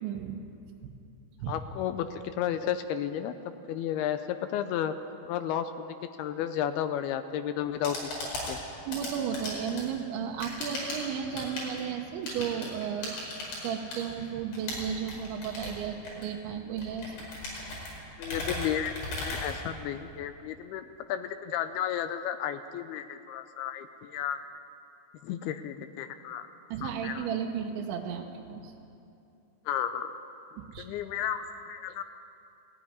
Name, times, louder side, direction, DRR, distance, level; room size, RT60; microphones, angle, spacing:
voice 1, 0.0-0.4 1.4-1.5 8.8-13.1 13.6-17.2 26.7-28.7 30.6-30.9, right 8 dB, 85° right, 1 dB, 3.4 m, -34 dB
voice 2, 1.5-3.4 3.7-4.9 5.3-8.2 8.5-8.6 18.2-18.9 19.2-24.4 25.2-26.5 26.8-27.3 29.7-30.1 30.8-32.0, left 10 dB, 80° left, 9 dB, 2.3 m, -33 dB
sound 1, 7.6-20.2, left 2 dB, 65° left, 6.9 m, -38 dB
17.5 x 15.5 x 9.7 m, 2.7 s
omnidirectional pair, 5.2 m